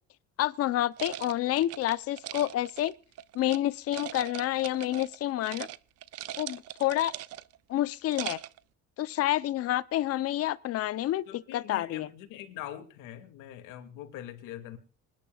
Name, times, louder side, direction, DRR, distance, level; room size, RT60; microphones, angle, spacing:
voice 1, 0.4-2.9 3.3-5.7 6.4-7.1 7.7-8.4 9.0-12.1, left 14 dB, 50° left, 0.8 m, -29 dB
sound 1, 1.0-3.6 3.9-5.2 5.4-5.8 6.0-7.6 8.0-8.6, right 13 dB, 55° right, 0.6 m, -40 dB
voice 2, 11.3-14.8, left 12 dB, 90° left, 2.5 m, -43 dB
26.0 x 10.5 x 2.4 m
cardioid pair, 155°, 30 cm